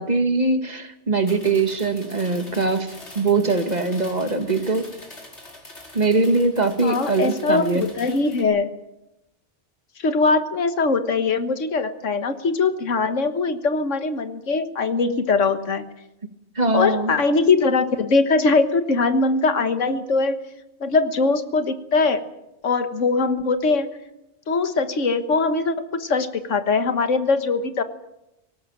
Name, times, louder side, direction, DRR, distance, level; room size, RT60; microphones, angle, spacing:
voice 1, 0.0-4.9 5.9-7.9 16.6-17.1, right 3 dB, 35° right, 8 dB, 1.7 m, -22 dB
sound 1, 1.1-8.4, left 1 dB, 70° left, 4.8 m, -43 dB
voice 2, 6.8-8.7 10.0-15.9 16.7-20.4 20.8-22.3 22.6-23.9 24.5-27.8, left 4 dB, 85° left, 10 dB, 1.7 m, -21 dB
19.0 x 18.0 x 8.8 m, 0.90 s
omnidirectional pair, 1.2 m